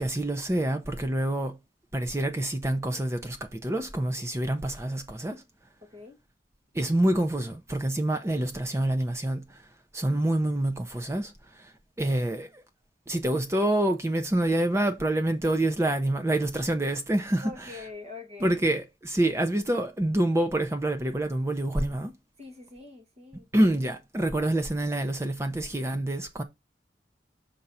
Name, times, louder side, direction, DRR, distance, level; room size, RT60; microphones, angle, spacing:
voice 1, 0.0-1.6 1.9-5.4 6.7-9.6 9.9-12.6 13.1-17.5 18.4-22.1 23.5-26.4, right 1 dB, 15° right, 0.6 m, -27 dB
voice 2, 17.4-18.6 22.4-23.5, left 3 dB, 40° right, 1.9 m, -44 dB
5.7 x 3.9 x 5.4 m
head